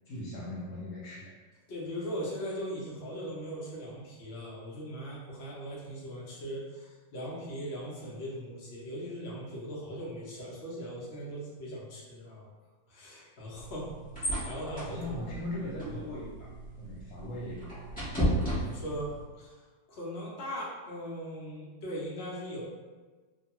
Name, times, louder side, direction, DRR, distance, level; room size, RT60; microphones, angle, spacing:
voice 1, 0.1-1.3 14.9-16.5 16.8-18.1, left 1 dB, 80° left, -7 dB, 1.3 m, -39 dB
voice 2, 1.7-12.5 12.9-13.9 14.1-15.2 18.6-19.5 19.9-22.6, equal, 55° left, -5 dB, 0.7 m, -39 dB
sound 1, 13.5-19.2, equal, 10° left, 0.4 m, -35 dB
2.9 x 2.2 x 2.9 m, 1.4 s
omnidirectional pair, 1.9 m